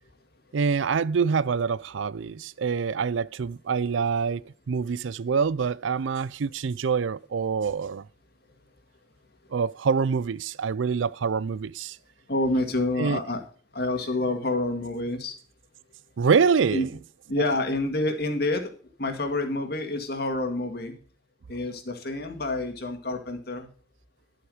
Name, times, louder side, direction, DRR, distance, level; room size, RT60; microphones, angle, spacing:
voice 1, 0.5-8.1 9.5-12.0 13.0-13.2 16.2-16.9, right 5 dB, 80° right, 0.4 m, -25 dB
voice 2, 12.3-13.4 13.7-15.3 16.7-16.9 17.3-18.6 19.0-21.0 21.5-23.7, left 2 dB, 55° left, 2.1 m, -28 dB
11.5 x 8.2 x 5.0 m
head